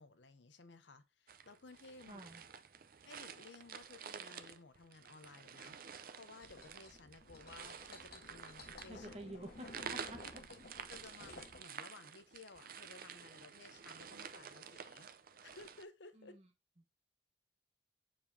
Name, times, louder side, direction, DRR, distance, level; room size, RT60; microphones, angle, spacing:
voice 1, 0.0-2.2 2.5-2.6 3.0-9.1 10.5-10.6 10.9-15.1 15.4-16.4, left 3 dB, 75° left, 0.7 m, -57 dB
sound 1, 1.3-15.8, right 7 dB, 50° right, 0.6 m, -50 dB
voice 2, 2.1-2.4 8.9-10.2 16.2-16.5, right 1 dB, 35° right, 1.2 m, -50 dB
sound 2, 6.4-11.6, left 2 dB, 60° left, 1.3 m, -55 dB
7.0 x 5.2 x 2.7 m
head